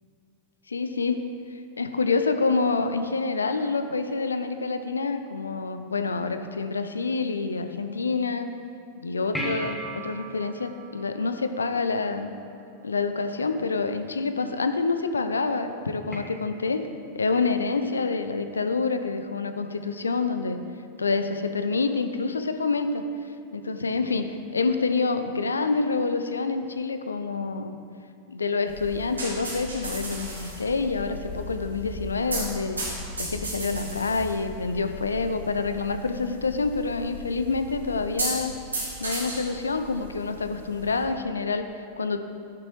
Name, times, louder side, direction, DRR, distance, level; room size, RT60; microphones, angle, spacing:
voice 1, 0.7-1.2 1.5-8.5 9.0-12.3 12.8-16.9 17.1-20.6 21.0-23.0 23.5-27.7 28.3-32.8 33.2-38.5 39.0-42.2, left 4 dB, 75° left, 9 dB, 0.5 m, -27 dB
sound 1, 9.3-12.1 16.1-16.2, right 1 dB, 5° left, 1.5 m, -36 dB
sound 2, 28.7-41.1, right 1 dB, 75° right, 2.2 m, -36 dB
12.5 x 7.1 x 3.1 m, 2.4 s
figure-of-eight pair, 90°, 0 cm